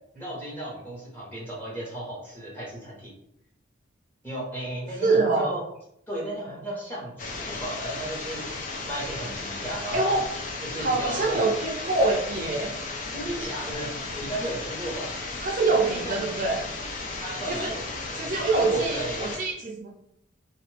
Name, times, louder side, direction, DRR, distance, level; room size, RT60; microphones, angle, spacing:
voice 1, 0.1-3.1 4.2-5.6 6.1-10.2 10.6-11.4 12.6-12.8 13.1-13.9 14.2-15.1 15.6-16.2 17.1-19.3, right 1 dB, 10° left, -5 dB, 1.1 m, -35 dB
voice 2, 5.0-5.5 9.9-10.3 10.8-12.7 15.4-16.6 17.5-17.7 18.1-19.9, right 3 dB, 40° right, -2 dB, 0.5 m, -25 dB
sound 1, 7.2-19.4, left 3 dB, 40° left, 0.5 m, -35 dB
2.7 x 2.5 x 3.3 m, 0.75 s
head